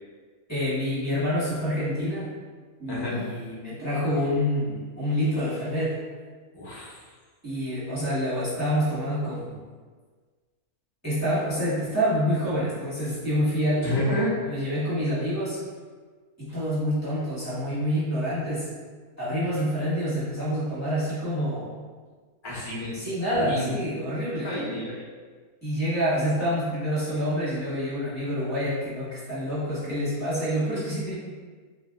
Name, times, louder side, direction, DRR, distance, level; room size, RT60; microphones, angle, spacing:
voice 1, 0.5-2.3 2.8-6.0 7.4-9.6 11.0-13.9 14.5-15.6 16.4-18.7 19.2-21.7 22.9-24.5 25.6-31.1, equal, 10° left, -11 dB, 1.1 m, -27 dB
voice 2, 2.9-3.2 6.5-7.0 13.8-14.4 22.4-23.0 23.3-23.8 24.4-25.0, left 1 dB, 25° left, -7 dB, 0.5 m, -29 dB
2.6 x 2.1 x 3.6 m, 1.5 s
omnidirectional pair, 1.6 m